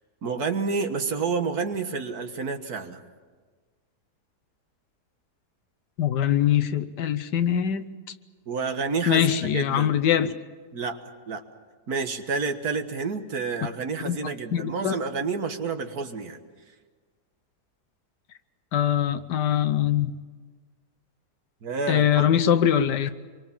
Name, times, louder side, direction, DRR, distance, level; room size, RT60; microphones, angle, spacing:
voice 1, 0.2-3.0 8.5-10.0 10.7-11.0 11.3-11.4 11.9-16.4 21.6-22.2, right 4 dB, 65° right, 7 dB, 1.9 m, -29 dB
voice 2, 6.0-7.9 9.1-10.3 14.0-14.2 14.5-14.9 18.7-20.2 21.9-23.1, left 9 dB, 85° left, 11 dB, 1.6 m, -22 dB
26.5 x 23.5 x 7.3 m, 1.4 s
omnidirectional pair, 1.8 m